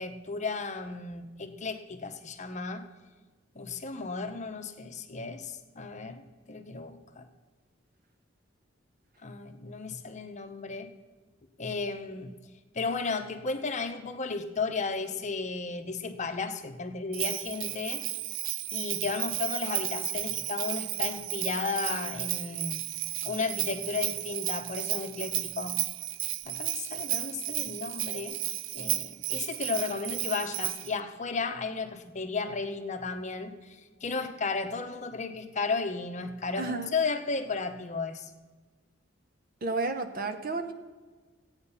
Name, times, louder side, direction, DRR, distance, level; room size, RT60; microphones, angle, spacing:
voice 1, 0.0-2.9 3.5-7.3 9.2-10.9 11.6-12.3 12.7-18.0 18.7-22.8 23.2-25.8 26.4-28.4 28.7-38.3, left 4 dB, 40° left, 7 dB, 0.9 m, -34 dB
Bell, 17.1-30.9, right 15 dB, 75° right, 0.4 m, -33 dB
voice 2, 36.6-36.9 39.6-40.7, right 3 dB, 50° right, 7 dB, 1.0 m, -31 dB
15.0 x 8.9 x 5.7 m, 1.3 s
head